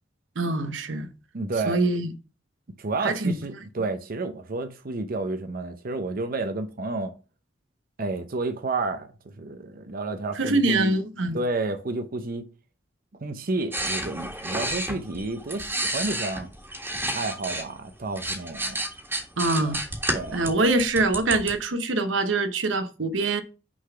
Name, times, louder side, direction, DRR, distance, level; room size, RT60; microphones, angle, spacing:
voice 1, 0.4-1.1 1.7-2.1 3.0-3.3 10.4-11.4 19.4-19.8 20.3-23.4, right 2 dB, 80° right, 0.9 m, -24 dB
voice 2, 1.3-1.8 2.8-7.1 8.0-9.1 9.4-10.9 11.3-12.4 13.2-16.5 17.1-18.8 19.6-19.7 20.1-20.4, right 3 dB, 50° right, 0.7 m, -30 dB
sound 1, 13.7-17.7 18.0-21.5, right 1 dB, 10° right, 1.7 m, -31 dB
6.1 x 4.0 x 5.6 m
head